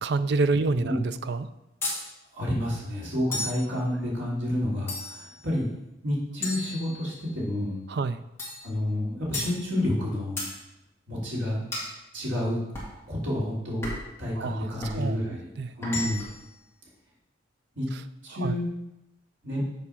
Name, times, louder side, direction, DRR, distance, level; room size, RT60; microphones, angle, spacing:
voice 1, 0.0-1.5 7.9-8.2 14.4-15.2 15.6-15.7 17.9-18.0 18.3-18.5, right 3 dB, 60° right, 12 dB, 0.4 m, -28 dB
voice 2, 0.6-1.0 2.3-5.6 6.0-7.8 8.6-10.4 11.1-11.6 12.1-12.6 13.1-13.9 14.2-15.5 15.8-16.3 17.7-17.9 18.2-18.7 19.4-19.6, left 1 dB, 75° right, -6 dB, 3.0 m, -29 dB
sound 1, 1.8-2.1 3.3-3.7 4.9-5.3 6.4-7.3 8.4-8.7 9.3-9.6 10.4-10.6 11.7-12.0 12.7-13.0 13.8-14.2 14.8-15.0 15.8-16.4, left 2 dB, 15° left, 2.1 m, -34 dB
7.0 x 4.9 x 5.7 m, 0.90 s
head